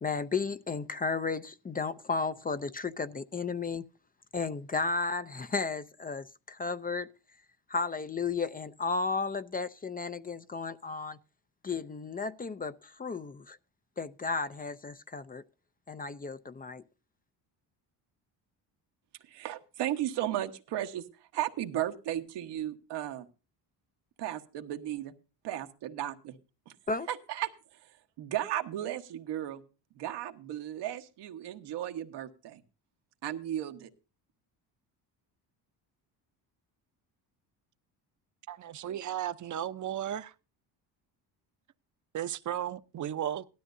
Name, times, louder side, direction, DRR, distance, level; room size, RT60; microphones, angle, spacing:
voice 1, 0.0-3.8 4.3-7.1 7.7-11.2 11.6-13.6 14.0-15.4 15.9-16.8 26.9-27.1, left 4 dB, 20° left, 0.5 m, -33 dB
voice 2, 19.2-21.0 21.3-23.3 24.2-25.1 25.4-26.4 27.1-27.5 27.8-27.9 28.2-29.6 30.0-32.6 33.2-33.9, right 12 dB, 80° right, 1.4 m, -35 dB
voice 3, 38.5-40.3 42.1-43.5, right 10 dB, 45° right, 0.8 m, -35 dB
17.5 x 12.5 x 2.7 m
cardioid pair, 110°, 41 cm